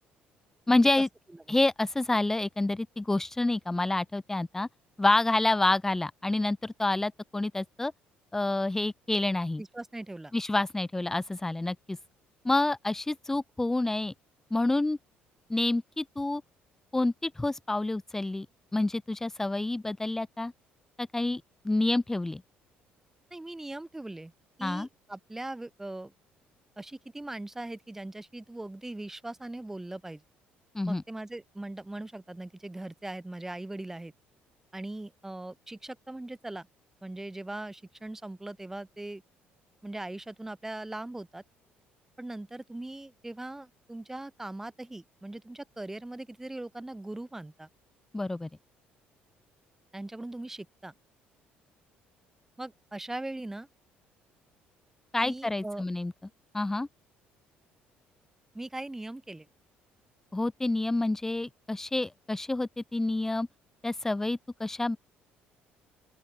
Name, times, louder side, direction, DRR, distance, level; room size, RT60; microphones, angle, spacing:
voice 1, 0.7-1.1 1.5-4.7 5.0-7.9 8.3-9.6 10.3-12.0 12.4-14.1 14.5-15.0 15.5-16.4 16.9-18.5 18.7-20.5 21.0-22.4 24.6-24.9 30.7-31.0 48.1-48.5 55.1-56.1 56.5-56.9 60.3-63.5 63.8-65.0, left 2 dB, 10° left, 0.5 m, -28 dB
voice 2, 9.6-10.3 23.3-24.3 24.6-26.1 26.8-30.2 30.8-34.1 34.7-36.7 37.0-39.2 39.8-41.4 42.2-47.7 49.9-50.9 52.6-53.7 55.2-55.8 58.5-59.5, right 2 dB, 10° right, 1.2 m, -40 dB
open air
cardioid pair, 110°, 4 cm